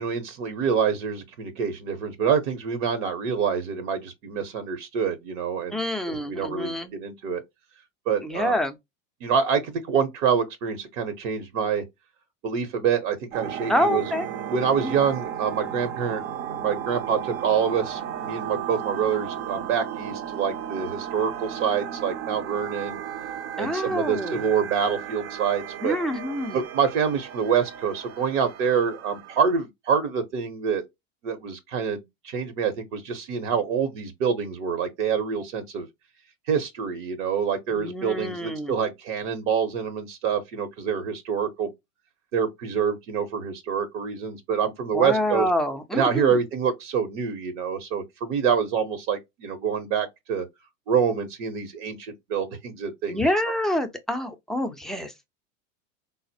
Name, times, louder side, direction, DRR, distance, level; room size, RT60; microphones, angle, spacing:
voice 1, 0.0-7.4 8.1-8.5 9.2-11.8 12.4-14.0 14.5-16.2 16.6-23.0 23.6-26.0 26.5-30.9 31.2-35.9 36.5-41.7 42.3-45.5 45.9-50.5 50.9-53.6, right 7 dB, 70° right, 0.9 m, -26 dB
voice 2, 5.7-6.9 8.2-8.7 13.7-14.2 14.8-15.0 23.6-24.4 25.8-26.6 37.7-38.7 44.9-46.4 53.1-55.3, left 1 dB, ahead, 0.4 m, -27 dB
sound 1, 13.3-29.5, right 9 dB, 45° right, 0.6 m, -35 dB
3.8 x 2.1 x 2.6 m
hypercardioid pair, 105°, 37 cm